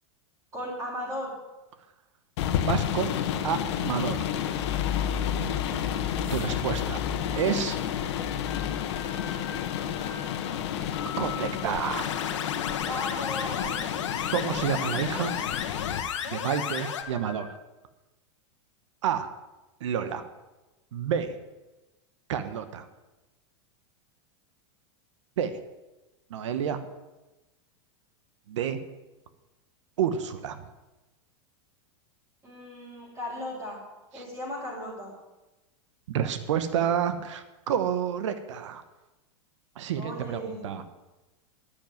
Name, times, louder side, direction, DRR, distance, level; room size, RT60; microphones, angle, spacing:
voice 1, 0.5-1.3 5.6-5.9 12.8-13.8 32.4-33.8 34.1-35.1 40.0-40.7, left 1 dB, 20° right, -7 dB, 4.7 m, -36 dB
sound 1, 2.4-16.0, left 9 dB, 65° left, 1.2 m, -30 dB
voice 2, 2.6-3.1 3.4-4.3 6.3-7.0 7.3-7.8 11.2-12.1 14.3-15.3 16.3-17.6 19.0-19.3 19.8-20.2 20.9-21.3 22.3-22.9 25.4-25.5 26.3-26.8 28.5-28.8 30.0-30.6 34.1-34.2 36.1-38.8 39.8-40.8, right 8 dB, 80° right, 10 dB, 1.1 m, -29 dB
sound 2, 7.0-17.6, left 8 dB, 30° left, 2.1 m, -47 dB
sound 3, 11.9-17.0, left 9 dB, 85° left, 1.4 m, -33 dB
10.5 x 7.0 x 9.2 m, 1.1 s
supercardioid pair, 135°, 15 cm